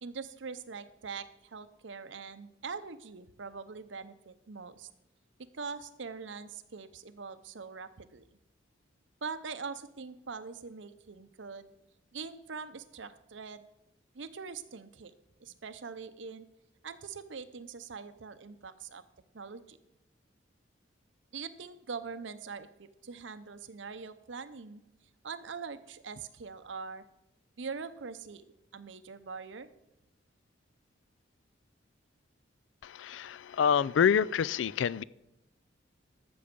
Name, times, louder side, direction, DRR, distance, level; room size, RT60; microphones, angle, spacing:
voice 1, 0.0-4.9 5.4-8.3 9.2-11.7 12.1-13.7 14.1-15.1 15.4-16.5 16.8-19.0 19.3-19.8 21.3-24.8 25.2-27.0 27.6-29.7, right 5 dB, 75° right, 13 dB, 0.7 m, -43 dB
voice 2, 32.8-35.0, left 7 dB, 75° left, 21 dB, 0.3 m, -27 dB
13.5 x 7.0 x 5.2 m, 0.90 s
head